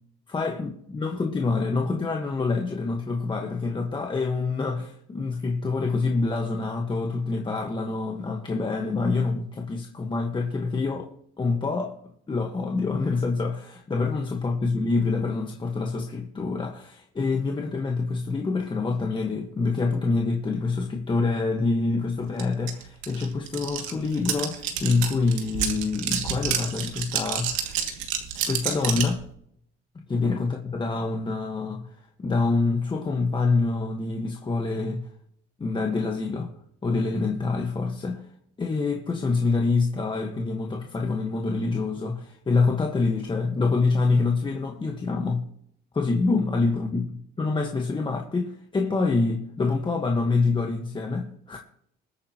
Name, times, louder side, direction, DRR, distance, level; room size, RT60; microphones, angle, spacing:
voice 1, 0.3-11.1 11.4-11.9 12.3-27.8 28.5-29.2 30.1-35.1 35.6-36.5 36.8-38.3 38.6-45.5 45.9-47.1 47.4-51.6, left 3 dB, 25° left, 1.5 m, -26 dB
sound 1, 22.4-22.5 22.7-29.2, right 9 dB, 90° right, 2.5 m, -29 dB
22.0 x 8.9 x 3.0 m
cardioid pair, 115°, 20 cm